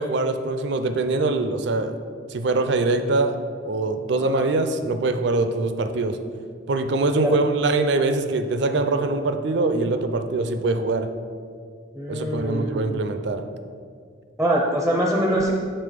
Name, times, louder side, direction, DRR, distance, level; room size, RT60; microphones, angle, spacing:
voice 1, 0.0-2.0 2.3-3.4 3.7-6.2 6.7-11.1 12.1-13.4, right 3 dB, 65° right, 9 dB, 0.4 m, -23 dB
voice 2, 4.1-4.5 7.2-7.4 11.9-12.8 14.4-15.5, right 1 dB, 5° right, -1 dB, 0.4 m, -23 dB
6.6 x 3.8 x 5.0 m, 2.1 s
head